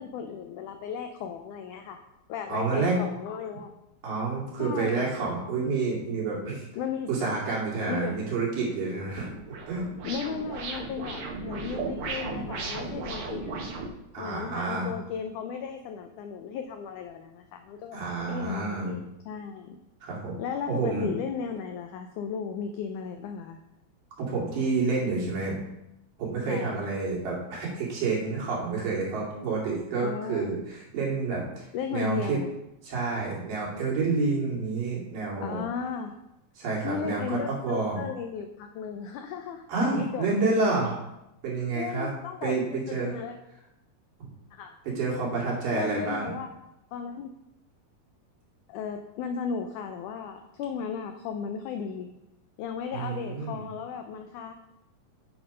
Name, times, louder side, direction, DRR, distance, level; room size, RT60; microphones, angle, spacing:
voice 1, 0.0-2.0 2.3-3.7 4.6-5.1 6.8-7.4 7.9-8.2 10.0-13.7 14.2-18.0 18.3-19.8 20.4-23.6 26.5-26.7 30.0-30.5 31.7-32.5 35.4-36.1 36.8-40.3 41.7-43.4 44.5-44.7 45.7-46.5 46.9-47.3 48.7-52.1 52.6-54.5, left 6 dB, 85° left, 5 dB, 1.8 m, -35 dB
voice 2, 2.5-3.0 4.0-6.7 7.1-9.3 9.7-9.9 14.1-14.9 17.9-18.9 20.0-20.4 20.7-21.1 24.2-25.6 26.2-31.6 31.9-32.4 32.8-35.6 36.6-38.0 39.7-41.0 41.4-42.1 42.4-43.2 44.2-44.3 44.9-46.3 52.9-53.7, right 3 dB, 65° right, -4 dB, 4.0 m, -29 dB
sound 1, 8.9-13.9, right 4 dB, 85° right, 1.2 m, -36 dB
9.6 x 6.2 x 5.0 m, 0.88 s
omnidirectional pair, 4.3 m